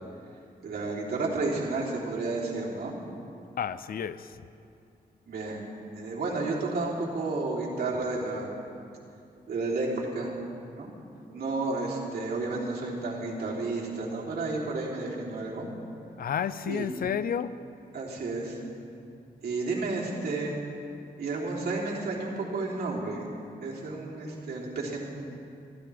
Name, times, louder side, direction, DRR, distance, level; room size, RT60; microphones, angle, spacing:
voice 1, 0.6-2.9 5.3-5.6 5.9-8.5 9.5-10.3 10.7-10.9 11.3-15.6 16.7-16.9 17.9-18.6 19.4-20.6 21.2-23.3 23.6-25.0, right 3 dB, 75° right, -4 dB, 3.4 m, -31 dB
voice 2, 3.6-4.4 16.1-17.5, left 8 dB, 65° left, 14 dB, 0.6 m, -31 dB
25.5 x 15.0 x 3.5 m, 2.5 s
wide cardioid pair, 115°, 16 cm